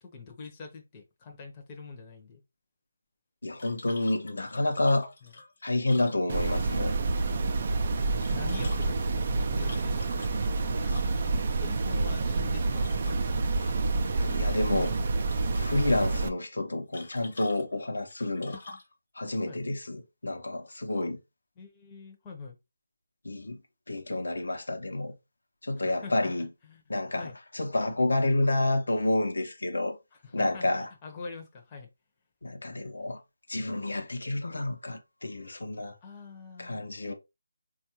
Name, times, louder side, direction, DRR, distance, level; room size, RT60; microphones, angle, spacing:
voice 1, 0.0-2.4 5.2-5.3 8.3-10.1 10.4-10.9 11.4-13.7 19.5-19.6 20.9-21.1 21.6-22.6 25.8-26.8 27.2-27.3 30.2-31.9 36.0-36.8, left 4 dB, 20° left, 0.7 m, -45 dB
voice 2, 3.4-5.1 5.6-6.9 13.5-15.0 15.5-18.6 19.2-21.2 23.2-23.6 23.9-25.1 25.6-26.5 26.9-30.0 30.3-30.9 32.4-33.2 33.5-35.9 36.6-37.1, left 2 dB, 80° left, 0.7 m, -29 dB
sound 1, 3.6-6.7 8.0-11.4 12.8-13.5 13.8-14.5 14.8-15.7 16.9-18.9, left 3 dB, 55° left, 0.8 m, -47 dB
sound 2, 6.3-16.3, right 3 dB, 40° right, 0.4 m, -28 dB
4.2 x 2.3 x 2.8 m
figure-of-eight pair, 165°, 0 cm